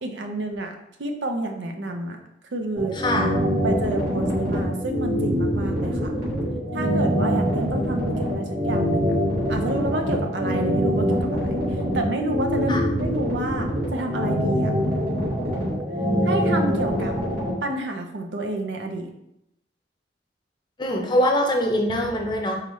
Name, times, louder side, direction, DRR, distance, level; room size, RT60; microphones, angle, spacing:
voice 1, 0.0-2.2 2.5-2.9 3.5-6.2 6.7-9.2 9.5-11.6 11.9-14.7 16.2-17.2 17.6-19.1, right 2 dB, 70° right, 4 dB, 0.6 m, -29 dB
sound 1, 2.8-17.5, equal, 55° right, 1.8 m, -24 dB
voice 2, 2.9-3.4 12.7-12.9 20.8-22.6, left 1 dB, 25° left, 1 dB, 0.6 m, -23 dB
4.2 x 3.9 x 3.1 m, 0.82 s
head